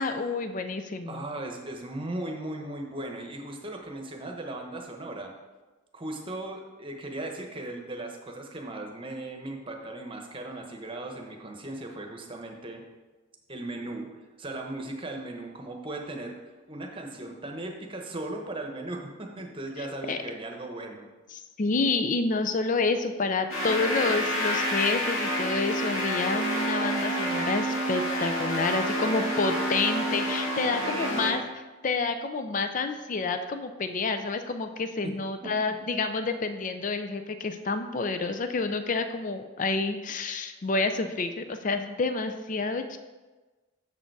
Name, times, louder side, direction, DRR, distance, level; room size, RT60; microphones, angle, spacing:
voice 1, 0.0-1.2 19.8-20.2 21.3-31.4 31.8-43.0, left 3 dB, 40° left, 8 dB, 0.4 m, -29 dB
voice 2, 1.1-5.3 5.9-12.8 13.5-16.4 16.7-21.1 30.8-31.4 35.0-35.1 35.4-35.5, right 2 dB, 25° right, 2 dB, 1.0 m, -37 dB
sound 1, 23.5-31.3, equal, 85° left, 2.5 m, -28 dB
7.0 x 6.7 x 4.7 m, 1.2 s
head